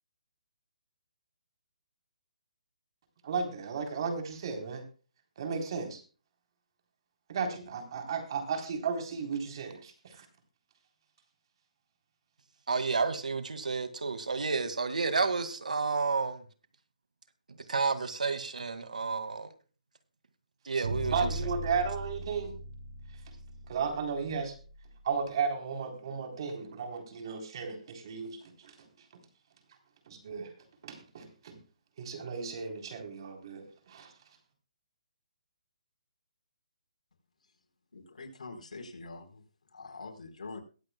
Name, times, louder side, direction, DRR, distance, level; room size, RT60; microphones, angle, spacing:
voice 1, 3.2-4.9 5.4-6.0 7.3-10.3 21.1-22.5 23.7-24.5 25.0-28.7 30.1-30.5 30.8-31.6 32.0-34.1, right 5 dB, 40° right, 5 dB, 3.8 m, -34 dB
voice 2, 12.7-16.4 17.7-19.5 20.7-21.3, right 4 dB, 85° right, 10 dB, 2.1 m, -31 dB
sound 1, 20.8-24.9, right 2 dB, 60° right, 7.0 m, -38 dB
voice 3, 37.9-39.4 39.7-40.6, left 3 dB, 75° left, 4 dB, 4.2 m, -44 dB
22.0 x 8.2 x 2.3 m, 0.35 s
hypercardioid pair, 165°, 4 cm